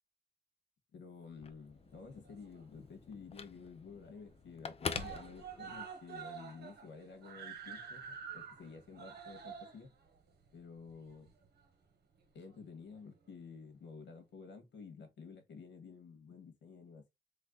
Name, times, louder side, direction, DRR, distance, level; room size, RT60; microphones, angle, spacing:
voice 1, 0.9-9.9 10.5-11.3 12.3-17.1, left 5 dB, 85° left, 1.7 m, -52 dB
Telephone, 1.3-6.0, left 5 dB, 35° left, 0.6 m, -46 dB
Screaming, 1.9-2.9 3.2-3.3 3.6-3.7 4.0-4.5 4.8-11.6 12.5-12.6, right 6 dB, 65° right, 1.4 m, -48 dB
3.7 x 3.3 x 3.8 m
cardioid pair, 110°, 18 cm